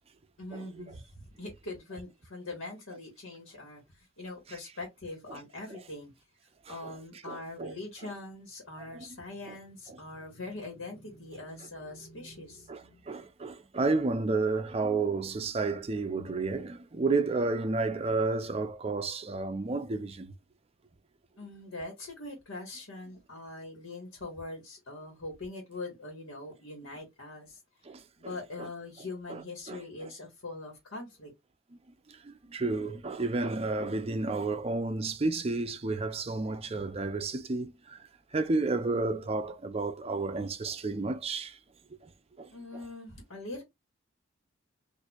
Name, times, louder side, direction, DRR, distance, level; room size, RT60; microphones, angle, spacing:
voice 1, 0.4-6.1 6.7-13.2 21.4-27.6 28.2-31.3 42.5-43.6, left 2 dB, 85° left, 1.4 m, -42 dB
voice 2, 7.3-7.7 8.9-9.1 12.7-20.3 27.9-28.7 29.3-29.4 29.7-30.1 32.1-41.6 42.0-42.1 42.4-42.5, right 3 dB, 30° right, 0.4 m, -31 dB
4.4 x 2.6 x 2.3 m
head